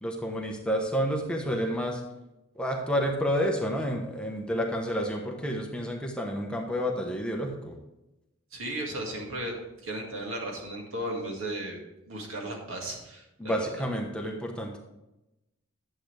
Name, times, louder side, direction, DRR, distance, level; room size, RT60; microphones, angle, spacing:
voice 1, 0.0-2.0 2.6-7.7 13.4-14.8, equal, 5° left, 0 dB, 1.1 m, -30 dB
voice 2, 8.5-9.6 9.8-11.8 12.1-13.9, right 1 dB, 80° right, 0 dB, 2.1 m, -35 dB
11.0 x 7.8 x 3.4 m, 0.95 s
head